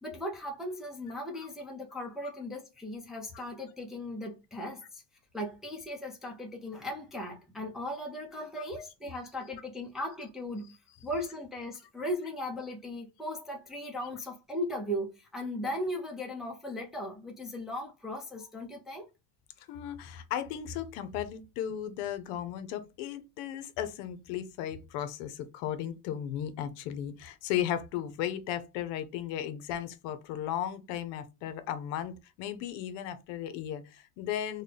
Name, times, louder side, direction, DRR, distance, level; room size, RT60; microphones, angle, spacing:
voice 1, 0.0-5.0 5.3-10.7 11.0-19.1, left 1 dB, ahead, 0.5 m, -37 dB
voice 2, 19.7-34.6, left 10 dB, 70° left, 0.7 m, -35 dB
3.8 x 2.2 x 3.3 m
cardioid pair, 145°, 45 cm